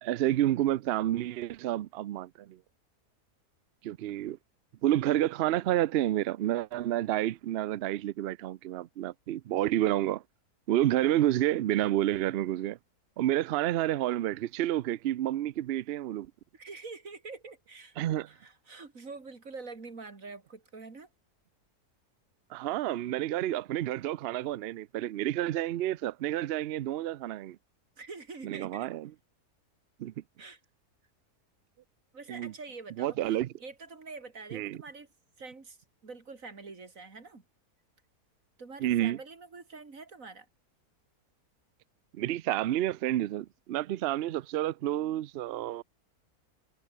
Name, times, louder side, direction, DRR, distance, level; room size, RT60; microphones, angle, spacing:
voice 1, 0.0-2.6 3.8-4.4 4.8-10.2 10.7-12.8 13.2-16.3 18.0-18.3 22.5-27.6 28.4-29.1 30.0-30.1 32.3-32.5 33.0-33.5 34.5-34.8 38.8-39.2 42.1-45.8, right 13 dB, 85° right, 0.5 m, -29 dB
voice 2, 16.5-18.0 18.3-21.1 28.0-28.9 30.4-30.6 32.1-35.1 35.4-35.8 36.0-37.4 38.6-40.5, right 4 dB, 55° right, 3.3 m, -45 dB
omnidirectional pair, 1.7 m